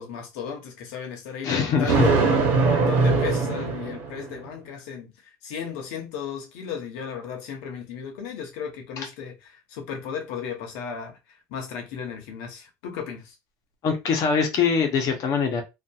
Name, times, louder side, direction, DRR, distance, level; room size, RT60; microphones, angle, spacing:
voice 1, 0.0-13.3, left 7 dB, 85° left, 0.9 m, -35 dB
voice 2, 1.4-2.1 13.8-15.6, left 6 dB, 55° left, 0.8 m, -23 dB
Thunder, 1.9-4.4, right 4 dB, 80° right, 0.9 m, -21 dB
2.7 x 2.4 x 2.3 m
supercardioid pair, 105°, 7 cm